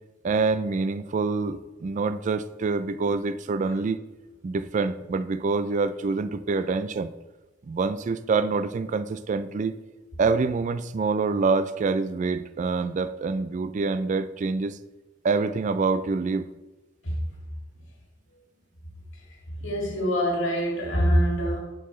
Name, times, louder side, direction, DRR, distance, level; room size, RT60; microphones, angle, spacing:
voice 1, 0.2-4.0 4.4-7.1 7.6-9.7 10.2-14.8 15.2-16.5 19.6-20.0, right 4 dB, 40° right, 12 dB, 0.3 m, -26 dB
voice 2, 19.6-21.6, equal, 75° left, -2 dB, 1.9 m, -24 dB
11.0 x 4.5 x 3.1 m, 1.1 s
head